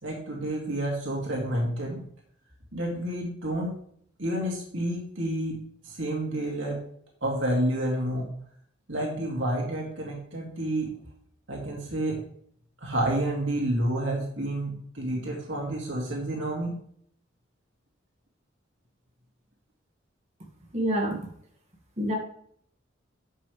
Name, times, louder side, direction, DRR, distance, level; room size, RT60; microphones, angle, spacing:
voice 1, 0.0-2.0 2.7-3.7 4.2-6.8 7.2-8.3 8.9-10.9 11.5-12.2 12.8-16.7, right 1 dB, 70° right, -2 dB, 2.6 m, -29 dB
voice 2, 20.7-21.2 22.0-22.2, equal, 35° right, 0 dB, 2.0 m, -26 dB
10.5 x 6.9 x 3.5 m, 0.63 s
head